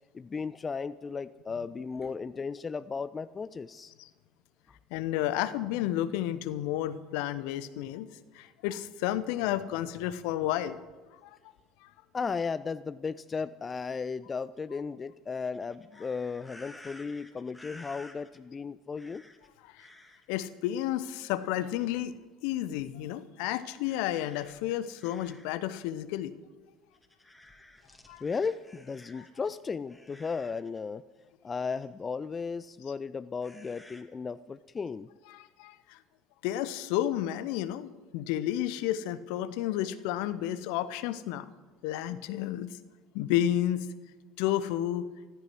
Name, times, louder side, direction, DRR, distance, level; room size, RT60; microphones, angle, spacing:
voice 1, 0.1-3.9 4.7-4.8 12.1-19.2 28.2-31.0 31.4-35.1, left 5 dB, 25° left, 15 dB, 0.4 m, -35 dB
voice 2, 4.9-8.1 8.3-10.8 11.2-11.4 11.8-11.9 19.6-19.9 20.3-22.1 22.4-26.3 28.1-28.2 29.2-29.3 35.3-36.0 36.4-41.5 41.8-42.8 43.1-43.9 44.4-45.1, left 12 dB, 60° left, 15 dB, 0.8 m, -31 dB
sound 1, 15.4-18.4 18.9-19.5 19.8-20.5 21.6-22.2 22.7-22.9 23.9-25.6 26.0-26.1 26.9-29.5 29.9-30.8 31.5-31.9 33.4-34.0, left 1 dB, 5° left, 2.1 m, -53 dB
14.5 x 13.5 x 6.2 m, 1.4 s
figure-of-eight pair, 65°, 0 cm